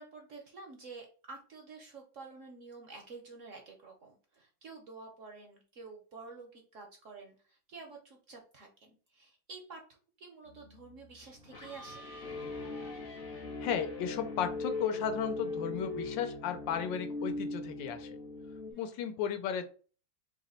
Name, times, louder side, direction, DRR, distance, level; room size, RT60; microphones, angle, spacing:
voice 1, 0.0-12.0 18.7-19.0, right 4 dB, 60° right, 1 dB, 0.8 m, -50 dB
sound 1, 10.5-18.7, left 3 dB, 50° left, 0.6 m, -40 dB
voice 2, 13.6-18.1 18.8-19.6, left 8 dB, 80° left, 8 dB, 1.3 m, -34 dB
3.2 x 2.9 x 4.2 m, 0.39 s
omnidirectional pair, 2.1 m